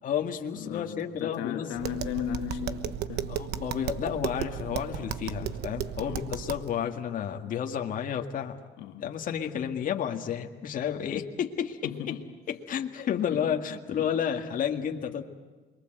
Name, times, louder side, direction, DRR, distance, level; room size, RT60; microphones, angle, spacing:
voice 1, 0.0-1.7 3.3-8.6 9.0-12.2 12.5-15.2, left 8 dB, 55° left, 2.0 m, -31 dB
voice 2, 0.5-3.4 5.4-5.5 6.0-6.2 8.8-9.1 11.8-12.3 13.3-13.6 14.0-14.1, left 10 dB, 90° left, 2.0 m, -36 dB
Tap, 1.7-6.7, right 10 dB, 75° right, 1.3 m, -35 dB
28.0 x 23.0 x 8.0 m
cardioid pair, 110°, 17 cm